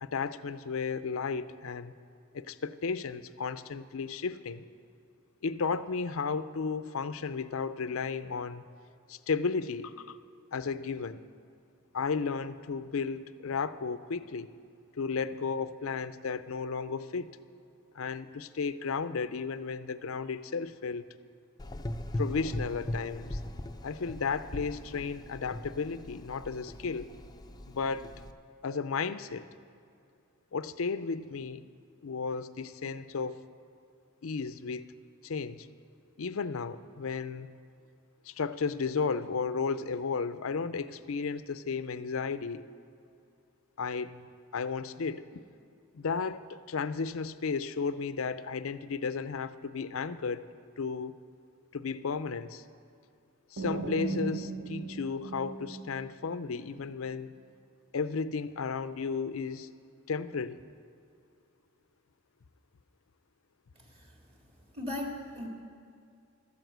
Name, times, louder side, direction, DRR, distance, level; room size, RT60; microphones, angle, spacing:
voice 1, 0.0-1.9 2.3-4.6 5.4-8.6 9.1-10.2 10.5-11.2 11.9-14.5 15.0-17.3 17.9-21.1 22.2-23.4 23.8-27.1 27.7-28.1 28.6-29.5 30.5-31.6 32.0-33.4 34.2-34.9 35.2-35.7 36.2-37.5 38.3-42.6 43.8-44.3 44.5-45.4 45.9-50.4 50.8-51.1 51.7-52.6 53.5-57.3 57.9-59.7 60.1-60.6, left 5 dB, 70° left, 14 dB, 0.5 m, -34 dB
Gurgling / Engine, 21.6-28.3, left 1 dB, 20° left, 0.5 m, -39 dB
sound 1, 53.6-56.4, right 3 dB, 70° right, 0.7 m, -37 dB
voice 2, 63.8-64.1 64.7-65.5, left 1 dB, 30° right, 0 dB, 2.1 m, -38 dB
13.0 x 9.2 x 8.0 m, 2.4 s
head